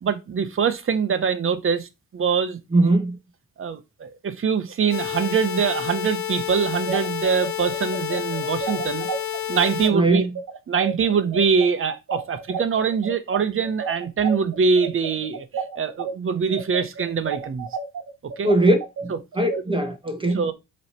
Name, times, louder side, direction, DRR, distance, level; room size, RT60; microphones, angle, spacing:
voice 1, 0.0-2.9 3.6-9.1 9.5-10.2 10.7-17.7 18.4-18.5 20.3-20.5, right 6 dB, 40° right, 1.0 m, -23 dB
voice 2, 2.7-3.2 9.9-10.3 18.4-20.5, right 1 dB, 15° right, 1.1 m, -21 dB
sound 1, 4.9-9.9, left 11 dB, 60° left, 1.3 m, -29 dB
sound 2, 6.7-16.1 16.5-19.6, right 5 dB, 65° right, 1.3 m, -31 dB
7.5 x 3.2 x 4.4 m
cardioid pair, 105°, 33 cm